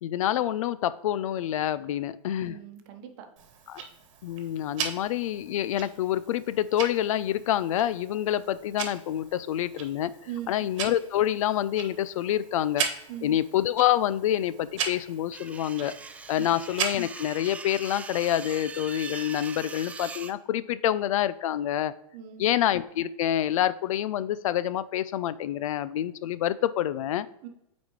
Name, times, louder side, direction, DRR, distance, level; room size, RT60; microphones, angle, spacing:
voice 1, 0.0-2.6 3.7-3.8 4.2-10.1 10.5-12.9 13.2-15.9 16.3-21.9 22.4-27.3, left 11 dB, 75° left, 16 dB, 0.4 m, -27 dB
voice 2, 2.4-3.3 10.3-10.5 13.1-13.4 16.4-16.5 22.1-22.5 27.4-27.5, right 10 dB, 45° right, 6 dB, 1.1 m, -40 dB
Tick-tock, 3.4-17.4, right 7 dB, 65° right, 1.3 m, -38 dB
sound 1, 15.3-20.3, right 4 dB, 10° right, 0.3 m, -41 dB
8.3 x 4.2 x 3.1 m, 0.81 s
hypercardioid pair, 130°, 17 cm